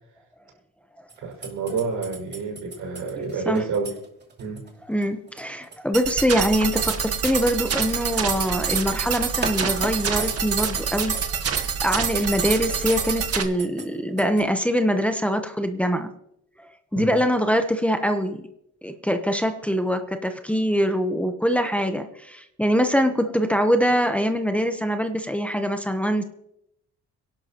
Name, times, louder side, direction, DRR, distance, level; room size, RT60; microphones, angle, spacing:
sound 1, 1.1-9.1 9.4-11.6 11.9-13.9 14.2-14.4, right 4 dB, 35° right, 2.7 m, -35 dB
voice 1, 1.2-3.9 4.4-4.6 10.5-10.7 16.9-17.1, right 4 dB, 80° right, 0 dB, 6.2 m, -29 dB
voice 2, 4.9-11.1 11.5-16.1 16.9-18.4 18.8-26.2, equal, 5° left, 6 dB, 1.0 m, -23 dB
sound 2, 5.9-13.4, right 7 dB, 50° right, 1.5 m, -26 dB
24.0 x 11.5 x 3.0 m, 0.79 s
cardioid pair, 90°, 30 cm